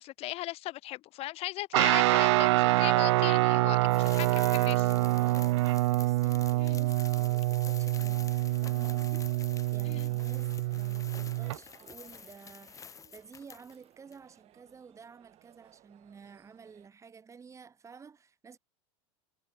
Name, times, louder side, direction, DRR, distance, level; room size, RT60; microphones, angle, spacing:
voice 1, 0.0-4.9 6.6-6.8 9.9-10.1, left 17 dB, 40° left, 0.8 m, -38 dB
Guitar, 1.7-11.6, right 19 dB, 75° right, 0.5 m, -26 dB
sound 1, 3.9-13.8 14.1-14.2, left 6 dB, 20° left, 1.7 m, -48 dB
voice 2, 5.2-18.6, right 6 dB, 20° right, 4.9 m, -53 dB
sound 2, 7.7-16.9, right 14 dB, 40° right, 5.6 m, -61 dB
supercardioid pair, 115°, 15 cm